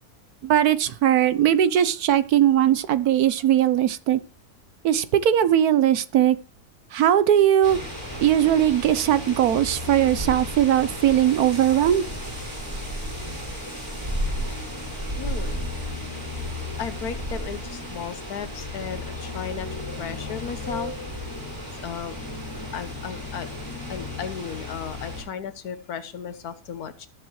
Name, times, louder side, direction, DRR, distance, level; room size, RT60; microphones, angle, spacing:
voice 1, 0.4-4.2 4.8-6.4 6.9-7.8 8.2-12.0, right 11 dB, 75° right, 1.2 m, -19 dB
sound 1, 7.6-25.2, left 1 dB, 30° right, 5.5 m, -33 dB
voice 2, 15.2-15.6 16.8-20.9 21.8-22.2 22.7-23.5 23.9-27.1, left 7 dB, 70° left, 1.5 m, -35 dB
18.0 x 7.4 x 3.1 m
omnidirectional pair, 1.7 m